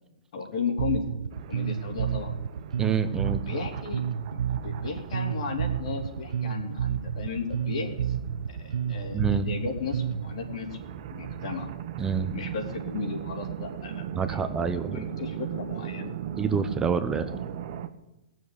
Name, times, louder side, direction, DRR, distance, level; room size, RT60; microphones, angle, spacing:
voice 1, 0.3-1.0 1.5-2.3 3.4-4.0 4.3-8.1 8.5-10.8 11.1-11.7 12.3-14.4 14.9-16.1, left 5 dB, 60° left, 3 dB, 3.3 m, -35 dB
Bass guitar, 0.8-10.4, right 8 dB, 75° right, 0.8 m, -30 dB
sound 1, 1.3-17.9, right 9 dB, 50° right, 1.2 m, -39 dB
voice 2, 2.8-3.4 9.1-9.5 12.0-12.3 14.1-15.0 16.4-17.3, right 6 dB, 15° right, 8 dB, 0.9 m, -27 dB
19.0 x 7.3 x 8.5 m, 0.95 s
hypercardioid pair, 120°, 4 cm